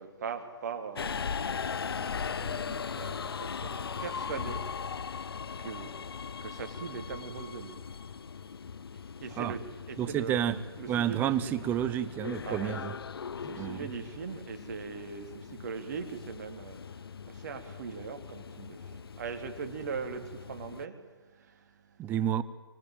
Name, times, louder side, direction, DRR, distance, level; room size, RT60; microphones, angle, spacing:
voice 1, 0.0-9.6 9.9-11.7 12.4-12.7 13.2-22.1, right 6 dB, 45° right, 3.4 m, -41 dB
Subway metro underground, 1.0-20.9, left 6 dB, 70° left, 0.7 m, -39 dB
voice 2, 10.0-10.6 10.9-12.9 13.6-13.9 22.0-22.4, right 10 dB, 15° right, 0.9 m, -30 dB
25.0 x 20.5 x 9.1 m
figure-of-eight pair, 145°, 13 cm